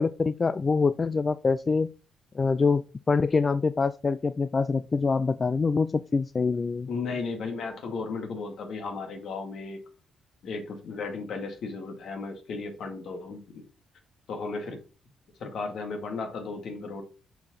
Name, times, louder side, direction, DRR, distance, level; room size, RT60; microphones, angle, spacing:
voice 1, 0.0-1.9 2.3-2.8 3.1-6.9, left 4 dB, 30° left, 0.3 m, -25 dB
voice 2, 6.9-9.8 10.4-13.6 14.3-14.8 15.4-17.0, left 4 dB, 65° left, 2.0 m, -35 dB
5.7 x 4.9 x 5.5 m
cardioid pair, 90°, 0 cm